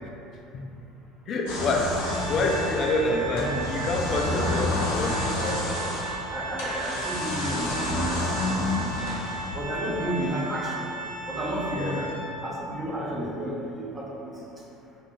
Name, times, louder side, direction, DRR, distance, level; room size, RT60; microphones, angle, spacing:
voice 1, 1.3-5.9 9.8-10.2 11.7-12.0 13.1-13.3, left 2 dB, 45° left, 0 dB, 0.3 m, -28 dB
sound 1, 1.5-9.7, left 1 dB, 65° left, 0.8 m, -30 dB
Organ, 2.0-12.7, right 2 dB, 75° right, 1.0 m, -36 dB
voice 2, 3.3-3.7 6.3-9.1 9.5-10.9 11.3-12.1 12.4-14.3, right 1 dB, 25° right, -4 dB, 0.7 m, -32 dB
2.6 x 2.4 x 3.7 m, 2.8 s
figure-of-eight pair, 65°, 0 cm